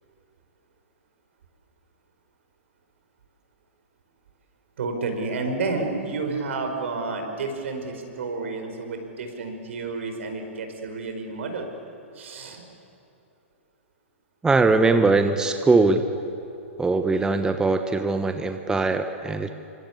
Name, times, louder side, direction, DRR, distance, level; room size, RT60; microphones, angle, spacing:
voice 1, 4.8-11.7 12.1-12.6, right 3 dB, 65° right, 5 dB, 5.2 m, -30 dB
voice 2, 14.4-16.0 16.8-19.5, right 3 dB, 10° right, 7 dB, 1.2 m, -21 dB
27.0 x 24.5 x 8.4 m, 2.9 s
hypercardioid pair, 115°, 7 cm